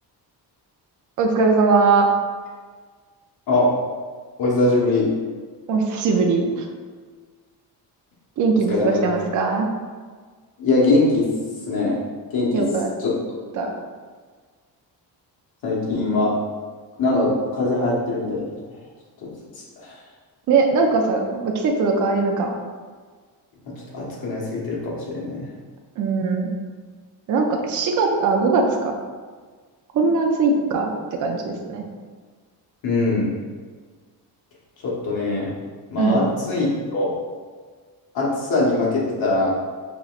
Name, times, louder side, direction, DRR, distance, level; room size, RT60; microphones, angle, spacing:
voice 1, 1.2-2.1 5.7-6.6 8.4-9.7 12.5-12.9 13.6-13.7 20.5-22.5 26.0-26.5 27.3-28.9 29.9-30.9 31.2-31.8 36.0-36.3, right 4 dB, 50° right, 2 dB, 0.5 m, -20 dB
voice 2, 4.4-5.1 8.7-9.0 10.6-11.3 11.7-12.0 12.3-12.6 13.0-13.1 15.6-16.3 17.0-18.4 19.2-19.3 19.6-20.0 23.9-25.5 32.8-33.3 34.8-35.5 35.9-37.1 38.1-39.5, left 2 dB, 60° left, -5 dB, 1.2 m, -22 dB
5.1 x 3.0 x 2.4 m, 1.5 s
cardioid pair, 175°, 41 cm